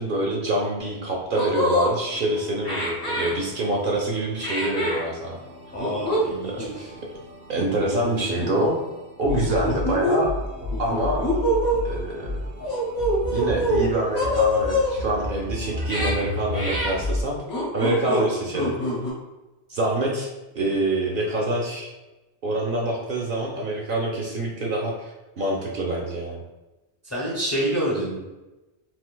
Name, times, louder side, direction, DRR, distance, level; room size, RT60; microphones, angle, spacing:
voice 1, 0.0-5.4 7.5-8.7 9.2-10.3 10.8-11.2 11.8-12.3 13.3-17.4 17.7-18.7 19.7-20.3 20.5-21.9 22.4-26.4, right 1 dB, 60° right, -1 dB, 0.6 m, -26 dB
sound 1, 0.8-0.9 1.3-1.9 2.6-3.3 4.4-5.0 5.8-6.2 6.6-6.7 7.6-8.1 8.4-8.6 9.3-10.2 10.7-11.8 12.6-13.8 14.1-14.9 15.8-16.1 16.5-16.9 17.5-18.3 18.5-19.1, left 1 dB, 50° left, 1.0 m, -25 dB
sound 2, 1.2-17.2, left 1 dB, 85° right, 1.3 m, -34 dB
voice 2, 5.7-6.9 27.0-28.2, right 1 dB, 20° left, -4 dB, 0.5 m, -27 dB
3.8 x 2.5 x 2.2 m, 1.1 s
omnidirectional pair, 1.1 m